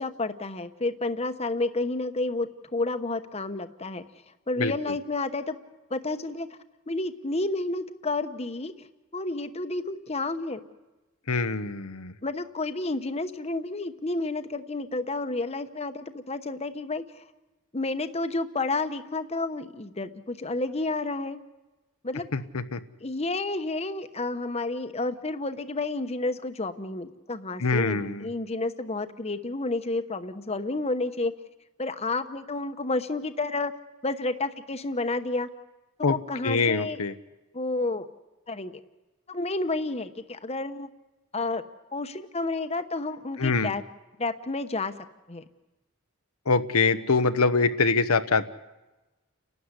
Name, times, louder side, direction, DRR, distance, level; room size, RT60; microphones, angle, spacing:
voice 1, 0.0-4.0 4.5-5.6 5.9-6.5 6.9-8.9 9.1-10.6 12.2-17.2 17.7-21.4 22.0-22.3 23.0-31.3 31.8-33.7 34.0-35.5 36.0-37.0 37.5-38.1 38.5-38.7 39.3-40.9 41.3-41.6 41.9-43.8 44.2-44.9 45.3-45.4, left 2 dB, 30° left, 9 dB, 1.0 m, -30 dB
voice 2, 11.3-12.1 22.3-22.8 27.6-28.3 36.0-36.2 36.4-37.1 43.4-43.7 46.5-48.5, left 4 dB, 85° left, 10 dB, 1.0 m, -24 dB
30.0 x 12.5 x 9.8 m, 1.1 s
head